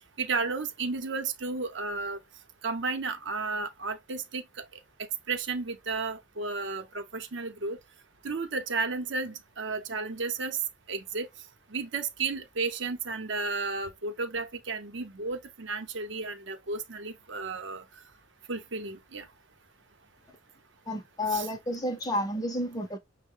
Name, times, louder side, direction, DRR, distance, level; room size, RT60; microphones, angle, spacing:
voice 1, 0.2-2.2 2.6-4.4 5.3-7.8 8.2-10.6 10.9-11.3 11.7-17.8 18.5-19.2 21.3-21.5, right 4 dB, 55° right, 0.7 m, -33 dB
voice 2, 20.9-23.0, left 1 dB, 15° left, 0.6 m, -31 dB
6.2 x 2.1 x 3.7 m
head